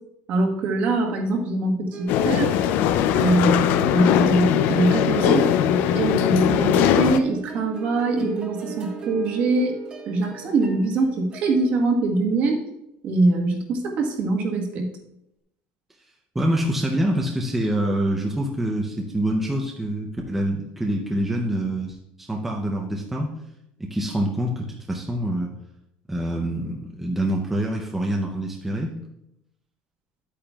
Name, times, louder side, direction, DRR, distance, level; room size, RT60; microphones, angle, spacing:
voice 1, 0.3-2.5 3.1-5.5 5.9-9.7 10.1-12.6 13.0-14.9, right 3 dB, 45° right, 2 dB, 1.4 m, -23 dB
sound 1, 1.9-12.0, right 4 dB, 25° right, 1.3 m, -37 dB
sound 2, 2.1-7.2, left 10 dB, 55° left, 0.4 m, -20 dB
voice 2, 16.3-23.3 23.8-25.5 26.1-28.9, right 1 dB, 5° right, -1 dB, 0.6 m, -26 dB
10.5 x 8.6 x 2.3 m, 0.82 s
cardioid pair, 180°, 4 cm